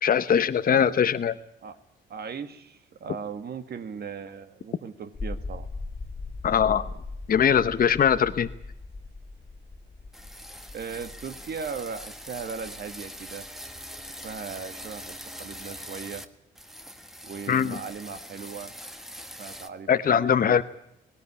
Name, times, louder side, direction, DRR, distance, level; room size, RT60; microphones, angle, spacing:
voice 1, 0.0-1.3 6.4-6.9 7.3-8.5 17.5-17.8 19.9-20.6, left 8 dB, 45° left, 10 dB, 0.9 m, -21 dB
voice 2, 2.1-5.7 10.7-13.4 14.2-16.2 17.2-18.7 19.4-20.6, right 6 dB, 55° right, 9 dB, 1.8 m, -38 dB
sound 1, 5.1-15.3, left 3 dB, 30° left, 1.7 m, -40 dB
sound 2, 10.1-16.3 16.6-19.7, equal, ahead, 1.5 m, -42 dB
18.0 x 18.0 x 9.8 m, 0.79 s
cardioid pair, 90°, 20 cm